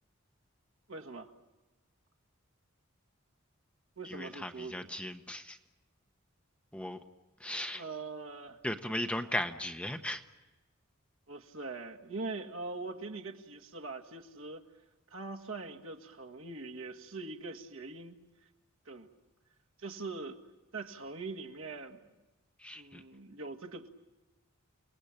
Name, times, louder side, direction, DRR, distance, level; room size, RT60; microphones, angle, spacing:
voice 1, 0.9-1.3 4.0-5.0 7.7-8.6 11.3-14.6 15.1-18.2 18.8-19.1 19.8-20.4 20.7-22.0 22.7-23.9, right 3 dB, 70° right, 3 dB, 1.7 m, -42 dB
voice 2, 4.1-5.6 6.7-7.0 7.4-7.8 8.6-10.2 22.6-23.0, left 1 dB, 5° left, 6 dB, 1.0 m, -37 dB
29.5 x 19.5 x 8.9 m, 1.1 s
head